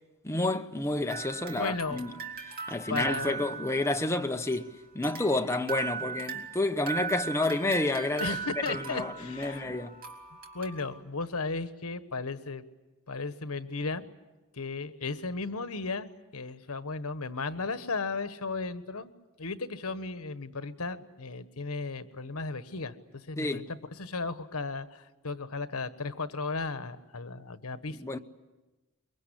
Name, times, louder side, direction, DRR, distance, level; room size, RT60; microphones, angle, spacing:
voice 1, 0.2-2.2 2.7-10.0 23.4-23.7 27.9-28.2, left 2 dB, 15° left, 0.9 m, -30 dB
sound 1, 1.1-4.6 5.0-11.0, right 6 dB, 40° right, 2.9 m, -39 dB
voice 2, 1.5-2.0 2.9-3.4 8.2-9.8 10.5-12.6 13.1-14.0 14.6-19.1 19.4-23.0 23.3-28.0, left 3 dB, 85° left, 1.3 m, -35 dB
23.5 x 22.5 x 10.0 m
head